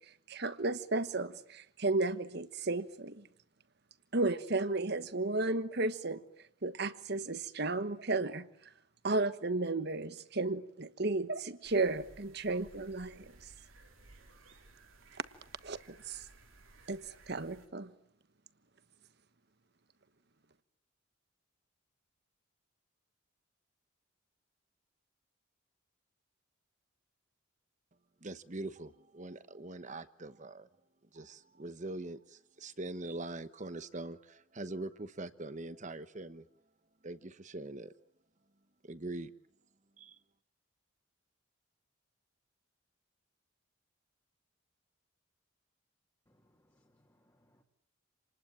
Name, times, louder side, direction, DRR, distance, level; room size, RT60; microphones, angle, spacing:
voice 1, 0.3-3.3 4.1-6.2 6.6-8.5 9.0-13.3 15.6-15.8 16.1-16.2 16.9-17.9, right 2 dB, 55° right, 13 dB, 1.3 m, -33 dB
sound 1, 11.6-17.7, right 2 dB, 85° right, 3.9 m, -59 dB
voice 2, 28.2-30.7 31.1-36.5 37.0-37.9 38.8-39.3 40.0-40.2, right 2 dB, 35° right, 13 dB, 1.1 m, -43 dB
voice 3, 46.3-47.6, equal, 15° left, 1 dB, 2.3 m, -71 dB
28.5 x 20.0 x 9.0 m, 0.72 s
head